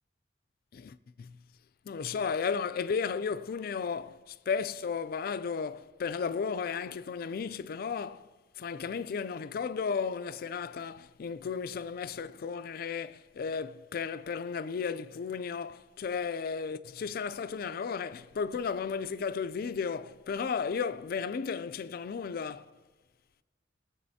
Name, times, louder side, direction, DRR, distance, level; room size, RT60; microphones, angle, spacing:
voice 1, 0.7-1.4 1.9-8.3 8.6-22.7, left 6 dB, 50° left, 0.3 m, -34 dB
21.0 x 7.6 x 2.7 m
head